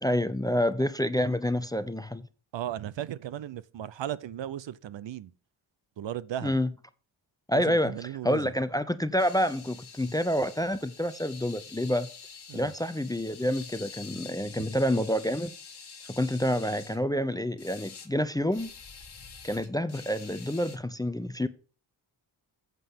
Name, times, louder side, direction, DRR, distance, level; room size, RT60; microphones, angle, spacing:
voice 1, 0.0-2.3 6.4-6.7 7.5-12.1 12.5-15.5 16.1-18.7 19.4-21.5, equal, 10° left, 0.5 m, -28 dB
voice 2, 2.5-5.3 6.0-6.5 7.5-8.5 12.5-12.7 14.6-14.7, right 11 dB, 65° right, 0.6 m, -36 dB
sound 1, 9.2-17.0 17.6-18.1 18.5-20.8, left 6 dB, 50° left, 1.6 m, -47 dB
8.5 x 7.6 x 3.6 m
cardioid pair, 50°, 49 cm